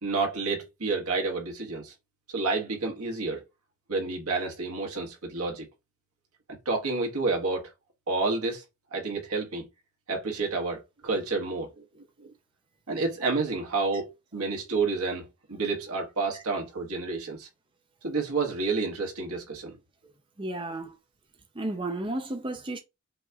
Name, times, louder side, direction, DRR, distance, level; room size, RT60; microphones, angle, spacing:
voice 1, 0.0-1.9 2.3-3.4 3.9-5.7 6.6-7.7 8.1-8.6 8.9-9.7 10.1-11.8 12.2-12.3 12.9-17.5 18.0-19.7, right 3 dB, 90° right, 1.6 m, -29 dB
voice 2, 20.4-21.0 21.5-22.8, right 2 dB, 25° right, 0.6 m, -33 dB
6.0 x 3.0 x 2.4 m
head